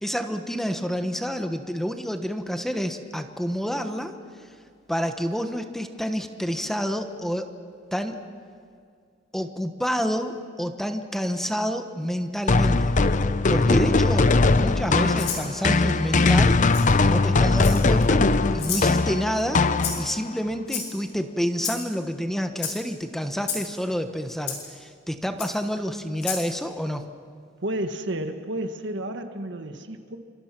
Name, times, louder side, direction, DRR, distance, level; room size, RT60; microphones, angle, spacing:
voice 1, 0.0-4.1 4.9-7.5 7.9-8.2 9.3-12.9 13.5-16.6 17.0-18.3 18.5-19.6 20.0-27.0, equal, ahead, 6 dB, 1.2 m, -28 dB
sound 1, 12.5-20.3, left 3 dB, 40° left, 0.7 m, -20 dB
Rattle (instrument), 15.2-15.5 16.7-16.8 17.6-18.0 18.6-18.9 19.8-20.1 20.7-21.1 21.6-21.8 22.6-22.7 23.4-23.6 24.5-24.6 25.4-25.5 26.2-26.4, left 7 dB, 60° left, 6.4 m, -30 dB
voice 2, 27.6-30.2, right 1 dB, 65° right, 7 dB, 1.7 m, -31 dB
28.0 x 26.0 x 6.0 m, 2.2 s
head